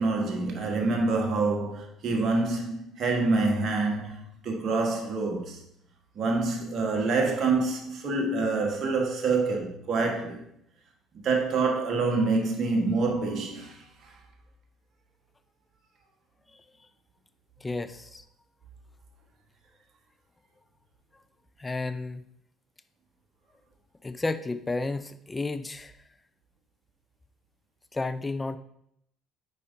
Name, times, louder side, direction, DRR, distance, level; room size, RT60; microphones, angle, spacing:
voice 1, 0.0-5.6 6.1-10.4 11.2-13.8 14.0-14.1, right 3 dB, 50° right, 1.5 m, -26 dB
voice 2, 17.6-18.2 21.6-22.2 24.0-25.9 27.9-28.6, left 3 dB, 20° left, 0.5 m, -32 dB
8.8 x 4.9 x 2.7 m
supercardioid pair, 75°, 0 cm